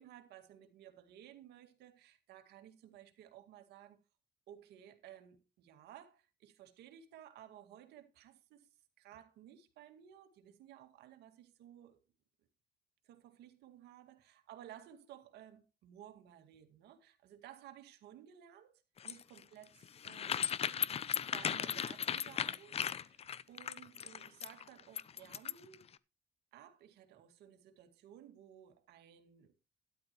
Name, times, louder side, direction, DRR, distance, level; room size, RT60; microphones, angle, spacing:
voice 1, 0.0-4.0 4.5-8.7 9.0-12.0 13.0-20.6 21.3-25.9 26.5-29.5, right 11 dB, 75° right, 2.0 m, -56 dB
sound 1, 19.0-25.8, left 8 dB, 35° left, 0.6 m, -37 dB
12.5 x 10.5 x 3.0 m
cardioid pair, 110°, 17 cm